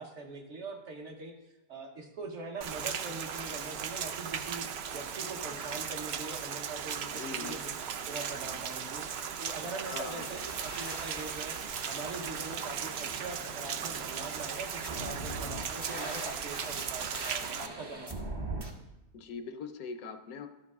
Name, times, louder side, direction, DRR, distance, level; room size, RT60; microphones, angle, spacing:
voice 1, 0.0-1.3 1.7-4.7 4.9-7.7 8.1-9.1 9.4-18.3, right 3 dB, 55° right, 2 dB, 1.1 m, -42 dB
Rain, 2.6-17.7, right 7 dB, 85° right, 0.5 m, -37 dB
voice 2, 7.1-7.6 9.9-10.3 19.1-20.5, left 5 dB, 70° left, 7 dB, 1.0 m, -41 dB
sound 1, 10.2-18.7, right 2 dB, 30° right, 0.5 m, -42 dB
12.5 x 5.3 x 3.5 m, 0.98 s
omnidirectional pair, 1.7 m